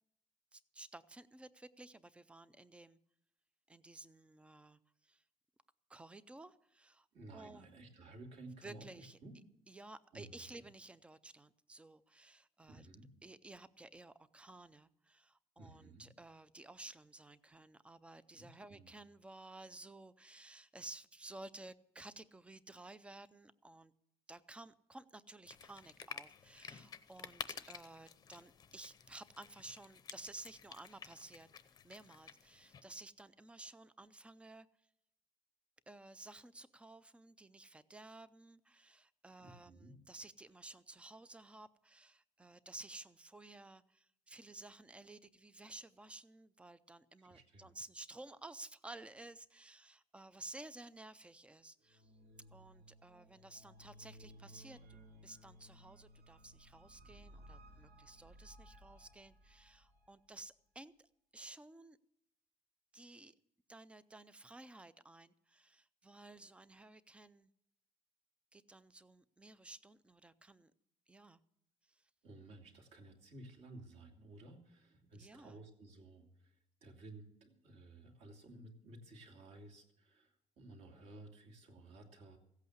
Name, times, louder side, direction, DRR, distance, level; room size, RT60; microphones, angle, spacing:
voice 1, 0.5-3.0 3.7-5.2 5.9-7.1 7.3-7.7 8.6-9.2 9.7-12.9 13.2-23.9 24.3-31.5 31.8-34.7 35.9-52.1 52.5-62.0 62.9-63.4 63.7-67.5 68.5-70.7 71.1-71.4 71.8-72.1 75.1-75.6, right 2 dB, 10° right, 15 dB, 0.4 m, -54 dB
voice 2, 7.1-9.3 10.1-10.5 12.7-13.1 15.6-16.1 18.4-18.9 39.4-39.9 47.2-47.7 72.2-82.4, right 2 dB, 55° right, 4 dB, 2.6 m, -55 dB
sound 1, 25.5-32.8, left 7 dB, 30° left, 0.7 m, -52 dB
sound 2, 51.8-60.1, equal, 85° right, 2.8 m, -59 dB
16.0 x 8.3 x 7.9 m, 0.76 s
cardioid pair, 170°, 13 cm